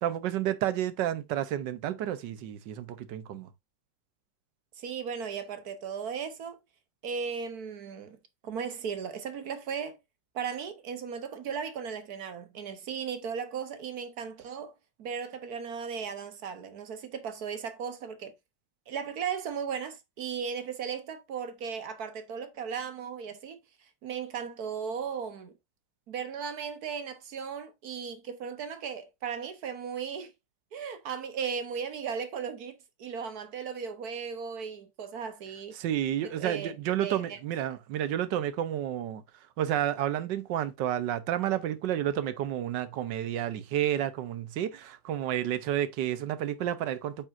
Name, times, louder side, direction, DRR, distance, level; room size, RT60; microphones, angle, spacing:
voice 1, 0.0-3.5 35.8-39.2 39.6-47.3, right 11 dB, 80° right, 1.4 m, -30 dB
voice 2, 4.8-6.6 7.0-8.2 8.4-10.0 10.3-18.3 18.9-23.6 24.0-25.5 26.1-30.3 30.7-35.8 36.2-36.7 37.0-37.4, right 6 dB, 60° right, 1.4 m, -36 dB
8.5 x 5.5 x 2.6 m
omnidirectional pair, 1.9 m